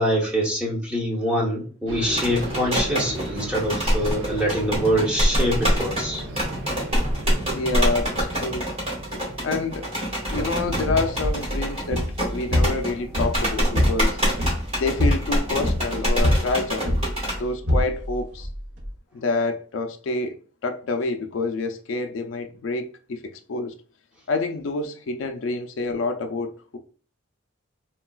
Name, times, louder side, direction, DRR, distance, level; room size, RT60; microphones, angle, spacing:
voice 1, 0.0-6.2, equal, 5° right, 0.8 m, -24 dB
sound 1, 1.9-10.2, right 1 dB, 85° right, 0.7 m, -35 dB
sound 2, 2.1-17.4, equal, 30° right, 1.3 m, -26 dB
voice 2, 7.5-8.7 9.4-9.9 10.2-12.1 12.3-14.2 14.8-17.0 17.4-18.5 19.1-20.4 20.6-23.8 24.3-26.8, left 3 dB, 70° left, 0.4 m, -27 dB
sound 3, 10.2-18.9, left 1 dB, 60° right, 0.9 m, -26 dB
3.8 x 2.2 x 2.3 m
head